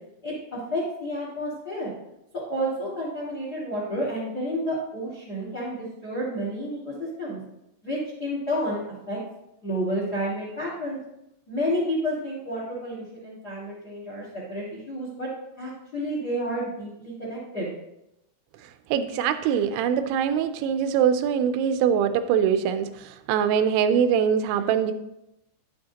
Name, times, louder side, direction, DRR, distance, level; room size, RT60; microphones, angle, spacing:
voice 1, 0.2-1.9 2.5-6.9 7.2-7.4 7.8-9.2 9.6-11.0 11.5-15.3 15.6-17.7, equal, 40° left, -4 dB, 1.4 m, -30 dB
voice 2, 18.9-24.9, right 8 dB, 85° right, 10 dB, 2.9 m, -23 dB
10.5 x 8.7 x 2.8 m, 0.85 s
omnidirectional pair, 5.3 m